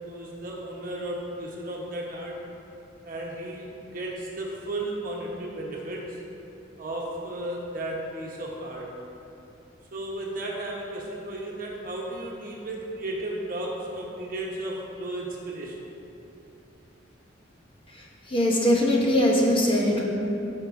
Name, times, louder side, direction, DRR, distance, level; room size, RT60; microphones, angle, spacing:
voice 1, 0.0-2.4 3.0-6.2 6.8-9.0 9.9-15.9, right 1 dB, 45° right, -2 dB, 1.1 m, -34 dB
voice 2, 17.9-20.0, left 1 dB, 30° left, -3 dB, 1.0 m, -22 dB
13.5 x 5.7 x 2.7 m, 2.8 s
head